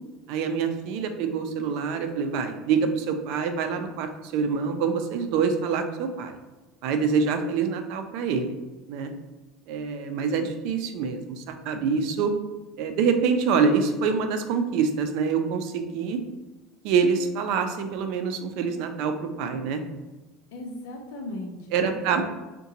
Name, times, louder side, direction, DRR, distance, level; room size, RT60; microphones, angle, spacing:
voice 1, 0.3-6.3 6.8-8.5 8.9-9.1 9.7-12.3 12.8-16.2 16.8-19.8 21.7-22.2, right 5 dB, 65° right, 6 dB, 0.4 m, -26 dB
voice 2, 20.5-22.2, left 1 dB, 85° left, 2 dB, 0.6 m, -37 dB
3.7 x 2.2 x 2.8 m, 1.1 s
cardioid pair, 145°, 0 cm